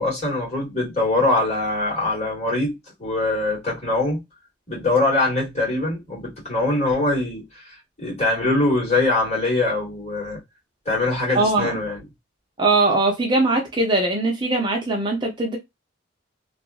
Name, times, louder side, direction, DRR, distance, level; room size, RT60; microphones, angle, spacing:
voice 1, 0.0-4.2 4.7-10.4 10.8-12.0, left 2 dB, 35° left, 1.7 m, -23 dB
voice 2, 11.3-11.8 12.6-15.6, right 2 dB, 25° right, 0.6 m, -21 dB
2.8 x 2.4 x 2.3 m
head